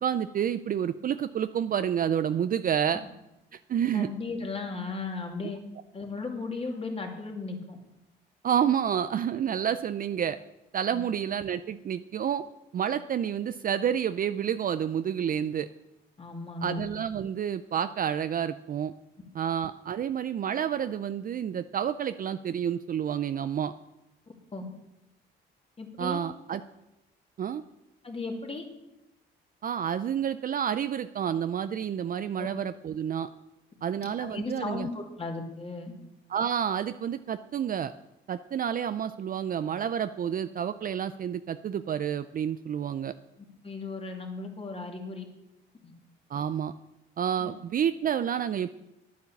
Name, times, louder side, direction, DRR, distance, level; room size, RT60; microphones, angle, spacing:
voice 1, 0.0-3.0 3.5-4.1 5.4-5.5 8.4-10.4 10.7-12.4 12.7-15.7 16.6-18.9 19.3-23.7 26.0-26.6 27.4-27.6 29.6-33.3 33.8-34.9 36.3-37.9 38.3-43.1 46.3-46.7 47.2-48.7, right 9 dB, 45° right, 12 dB, 0.5 m, -29 dB
voice 2, 3.9-5.6 5.9-7.8 10.9-11.0 16.2-16.8 24.5-24.6 25.8-26.2 28.0-28.6 32.4-32.5 34.2-35.9 43.6-45.3 45.8-45.9 47.4-47.5, left 3 dB, 30° left, 2 dB, 2.5 m, -36 dB
9.5 x 9.4 x 7.2 m, 0.94 s
cardioid pair, 90°, 20 cm